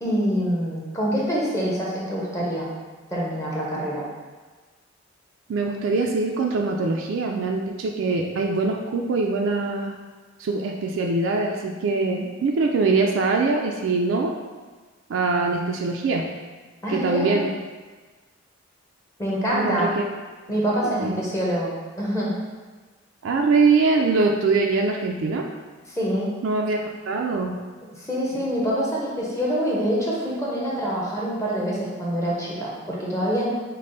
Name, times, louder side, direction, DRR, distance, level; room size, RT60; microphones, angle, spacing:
voice 1, 0.0-2.7 3.1-4.0 16.8-17.4 19.2-20.0 20.5-22.3 25.9-26.3 27.9-33.5, equal, 15° left, -5 dB, 0.7 m, -25 dB
voice 2, 5.5-10.0 10.4-14.4 15.1-16.3 16.9-17.5 19.5-20.0 20.8-21.2 23.2-25.5 26.4-27.5, right 3 dB, 65° right, 1 dB, 0.3 m, -23 dB
5.3 x 2.0 x 3.8 m, 1.4 s
head